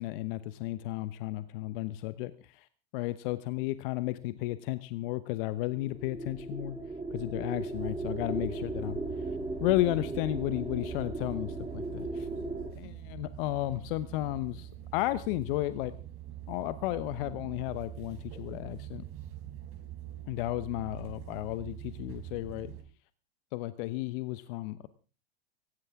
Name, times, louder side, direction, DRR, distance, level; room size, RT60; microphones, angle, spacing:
voice 1, 0.0-2.7 2.9-6.8 7.1-9.0 9.6-12.3 12.8-15.9 16.5-19.0 20.3-22.7 23.5-24.9, left 17 dB, 55° left, 14 dB, 1.0 m, -33 dB
sound 1, 5.6-12.7, right 2 dB, 10° right, 5.9 m, -37 dB
sound 2, 7.7-22.8, right 13 dB, 45° right, 3.7 m, -44 dB
18.0 x 16.0 x 3.6 m, 0.34 s
hypercardioid pair, 100°, 32 cm